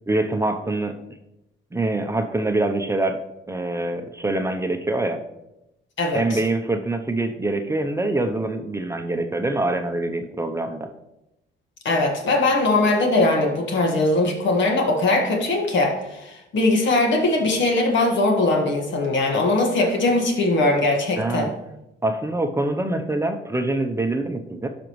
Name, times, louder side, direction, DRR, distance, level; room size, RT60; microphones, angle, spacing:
voice 1, 0.1-0.9 1.7-3.2 3.5-5.2 6.1-10.9 21.2-21.5 22.0-24.7, right 2 dB, 15° right, 5 dB, 0.7 m, -24 dB
voice 2, 6.0-6.4 11.8-21.5, left 2 dB, 70° left, 2 dB, 1.7 m, -20 dB
12.0 x 5.1 x 3.1 m, 0.90 s
cardioid pair, 90°, 20 cm